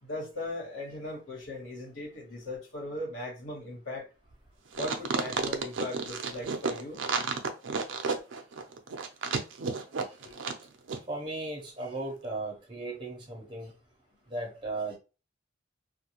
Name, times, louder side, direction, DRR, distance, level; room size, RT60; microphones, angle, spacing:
voice 1, 0.0-4.1 4.8-7.0 10.2-10.3, left 1 dB, 90° left, 1.2 m, -38 dB
sound 1, 4.7-10.6 10.9-11.0, right 5 dB, 75° right, 0.5 m, -31 dB
voice 2, 11.1-13.7 14.3-15.0, right 2 dB, 25° right, 0.7 m, -36 dB
2.4 x 2.2 x 2.9 m
head